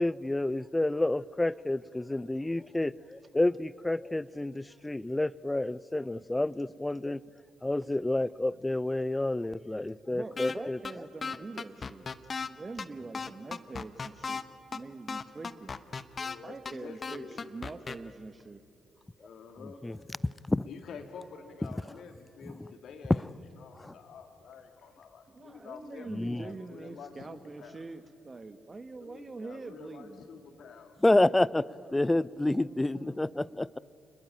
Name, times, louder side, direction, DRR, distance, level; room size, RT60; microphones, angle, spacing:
voice 1, 0.0-7.2 7.6-10.8 19.6-20.2 20.5-20.7 22.4-22.7 23.1-23.2 23.8-23.9 26.1-26.4 31.0-31.7 31.9-33.7, left 2 dB, 15° left, 0.6 m, -29 dB
voice 2, 10.1-12.1 12.5-14.4 14.7-15.7 16.4-18.6 25.3-30.2 31.7-32.2 32.6-33.2, right 3 dB, 35° right, 1.7 m, -44 dB
sound 1, 10.4-10.6 10.8-10.9 11.2-12.5 12.8-12.9 13.1-14.4 14.7-14.8 15.1-16.4 16.7-16.8 17.0-18.0, left 5 dB, 40° left, 1.1 m, -35 dB
voice 3, 16.2-17.5 19.2-19.8 20.6-23.2 23.6-27.8 29.0-31.0, left 6 dB, 65° left, 2.8 m, -48 dB
28.0 x 21.0 x 9.0 m
hypercardioid pair, 40°, 0 cm